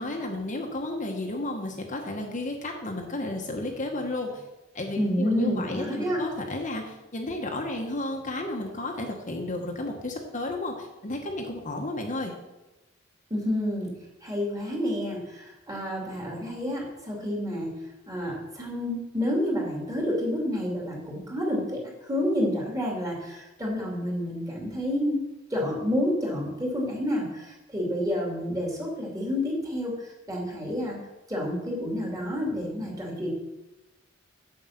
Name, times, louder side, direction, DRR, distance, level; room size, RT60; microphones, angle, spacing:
voice 1, 0.0-4.4 4.7-12.3, left 2 dB, 40° left, 2 dB, 1.1 m, -32 dB
voice 2, 5.0-6.2 13.3-13.9 14.2-17.8 18.1-21.8 22.1-25.2 25.5-31.0 31.3-33.3, left 1 dB, 20° right, -2 dB, 2.6 m, -29 dB
7.8 x 7.6 x 5.8 m, 1.0 s
head